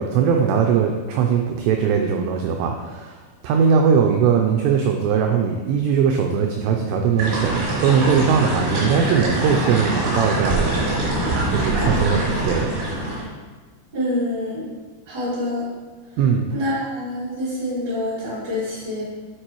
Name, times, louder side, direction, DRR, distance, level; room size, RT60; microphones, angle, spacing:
voice 1, 0.0-10.8 11.5-12.7 16.2-16.4, right 6 dB, 90° right, 3 dB, 2.4 m, -20 dB
sound 1, 7.2-13.2, right 2 dB, 70° right, 4.6 m, -23 dB
voice 2, 13.9-14.6 15.1-15.6 16.5-19.0, left 1 dB, 35° right, -9 dB, 1.8 m, -26 dB
11.0 x 4.7 x 3.0 m, 1.3 s
omnidirectional pair, 5.4 m